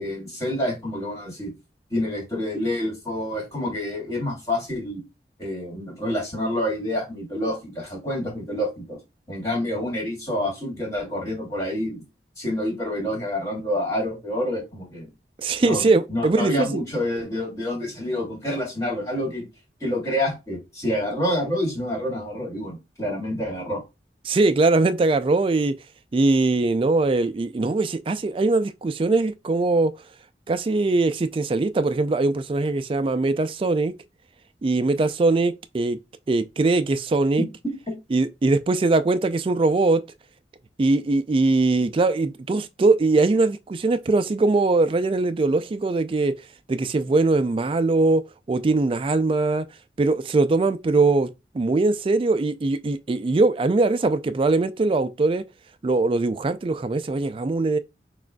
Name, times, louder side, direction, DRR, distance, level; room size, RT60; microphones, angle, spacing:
voice 1, 0.0-1.5 1.9-5.0 5.4-9.0 9.3-12.0 12.4-15.1 15.6-19.5 19.8-23.8 37.9-38.0, left 1 dB, 20° left, 2.2 m, -28 dB
voice 2, 15.4-16.8 24.3-25.7 26.1-29.9 30.5-33.9 34.6-36.0 36.3-37.4 38.1-40.0 40.8-46.3 46.7-48.2 48.5-49.6 50.0-55.4 55.8-57.8, right 3 dB, 30° right, 0.3 m, -21 dB
6.1 x 2.5 x 2.2 m
head